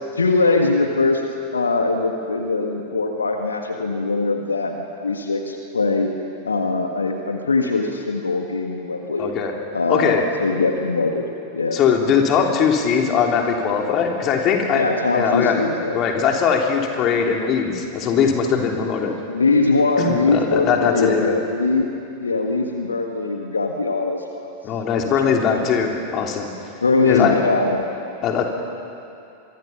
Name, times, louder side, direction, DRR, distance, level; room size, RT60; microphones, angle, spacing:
voice 1, 0.1-1.2 1.5-6.1 6.4-9.3 9.7-11.3 11.5-11.8 14.7-16.0 19.3-24.5 24.9-25.4 26.8-27.9, left 3 dB, 75° left, 3 dB, 1.6 m, -21 dB
voice 2, 9.2-9.5 9.9-10.2 11.7-14.8 15.1-15.6 15.9-19.2 20.0-21.4 24.6-26.5 27.1-27.4 28.2-28.5, left 6 dB, 35° left, 2 dB, 3.2 m, -20 dB
25.5 x 23.5 x 5.7 m, 2.6 s
figure-of-eight pair, 90°, 0 cm